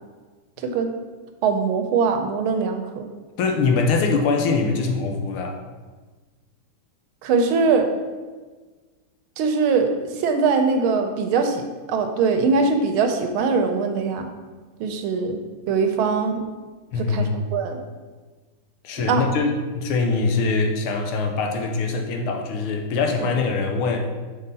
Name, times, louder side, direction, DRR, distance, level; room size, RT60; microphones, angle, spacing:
voice 1, 1.4-3.1 7.2-7.9 9.4-14.3 14.8-15.4 15.7-16.4 17.0-17.8 19.0-19.2 23.2-23.3, right 4 dB, 85° right, 6 dB, 1.5 m, -22 dB
voice 2, 3.4-5.6 16.9-17.4 18.8-24.1, left 4 dB, 90° left, 3 dB, 1.6 m, -23 dB
6.4 x 4.5 x 4.0 m, 1.4 s
omnidirectional pair, 2.3 m